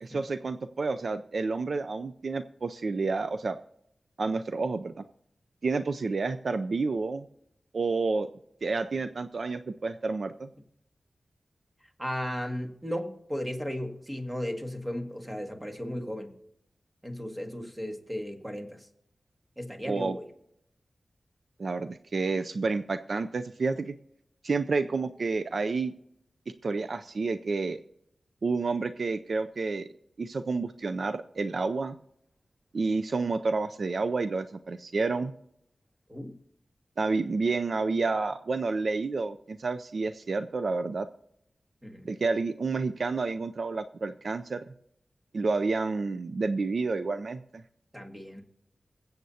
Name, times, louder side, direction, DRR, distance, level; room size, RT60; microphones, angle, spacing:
voice 1, 0.0-3.6 4.2-5.0 5.6-7.3 7.7-8.3 8.6-10.5 19.9-20.2 21.6-23.9 24.4-25.9 26.6-27.8 28.4-29.9 30.2-32.0 32.7-35.3 37.0-41.1 42.0-44.7 45.3-47.6, right 3 dB, 65° right, 10 dB, 0.4 m, -29 dB
voice 2, 12.0-16.3 17.0-18.8 19.6-20.3 36.1-36.4 41.8-42.1 47.9-48.4, equal, 15° right, 4 dB, 1.8 m, -35 dB
23.5 x 7.9 x 2.8 m, 0.75 s
wide cardioid pair, 70°, 0 cm